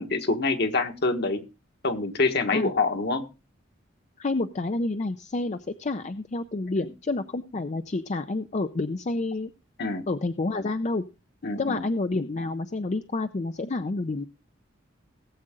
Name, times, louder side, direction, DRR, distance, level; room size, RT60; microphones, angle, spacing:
voice 1, 0.0-1.4 1.8-3.2 6.8-6.9 9.8-10.0 11.4-11.8, left 3 dB, 60° left, 6 dB, 1.5 m, -26 dB
voice 2, 4.2-9.5 10.1-11.0 11.6-14.3, left 2 dB, 35° left, 9 dB, 0.5 m, -29 dB
18.0 x 7.7 x 3.7 m, 0.30 s
head